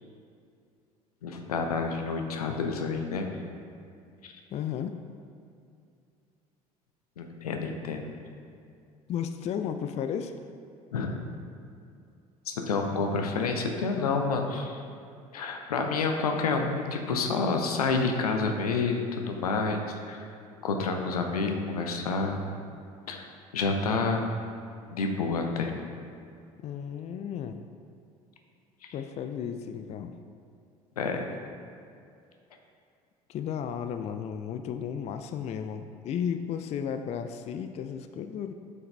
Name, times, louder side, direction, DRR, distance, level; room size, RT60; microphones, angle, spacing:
voice 1, 1.2-3.3 4.2-4.3 7.2-8.2 10.9-11.2 12.5-14.8 15.3-20.3 20.6-22.4 23.1-23.3 23.5-24.2 24.9-25.7 31.0-31.4, left 4 dB, 80° left, 4 dB, 0.6 m, -29 dB
voice 2, 4.5-5.0 9.1-10.3 26.6-27.6 28.9-30.2 33.3-38.5, left 8 dB, 35° left, 8 dB, 0.4 m, -34 dB
8.2 x 4.7 x 3.3 m, 2.4 s
figure-of-eight pair, 60°, 19 cm